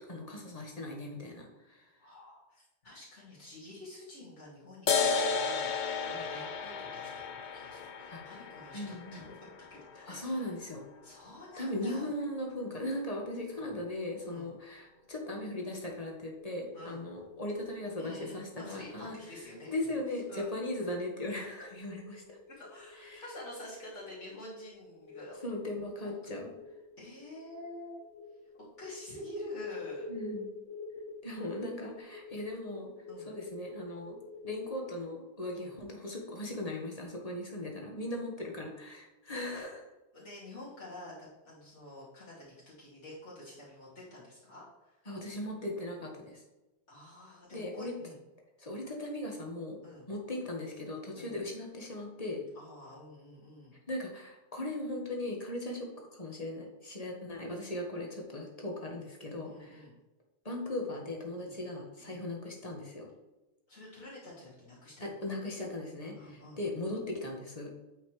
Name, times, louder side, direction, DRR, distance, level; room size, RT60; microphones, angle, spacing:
voice 1, 0.1-1.9 6.0-6.3 8.1-8.2 8.7-9.2 10.1-10.8 11.6-19.1 19.7-22.4 23.0-23.2 25.4-26.5 30.1-30.5 31.2-32.9 33.2-34.2 34.4-39.8 45.0-46.4 47.5-47.9 48.6-49.8 50.1-52.4 53.9-59.9 60.4-63.1 65.0-67.7, left 1 dB, 35° left, 0 dB, 1.7 m, -38 dB
voice 2, 2.0-10.5 11.0-12.1 14.2-14.5 16.7-17.0 18.0-19.9 20.3-20.5 22.5-25.4 26.0-26.2 27.0-28.0 28.5-30.0 33.1-33.3 35.6-35.7 40.1-45.0 46.9-48.2 49.8-50.1 51.1-51.4 52.5-53.7 59.4-59.9 61.4-61.6 62.0-62.2 63.7-65.2 66.1-66.6, left 1 dB, 85° left, -8 dB, 3.0 m, -48 dB
sound 1, 4.9-11.8, left 5 dB, 50° left, 0.7 m, -34 dB
sound 2, 16.4-35.0, left 3 dB, 65° left, 1.3 m, -49 dB
8.9 x 5.6 x 3.3 m, 1.0 s
omnidirectional pair, 1.2 m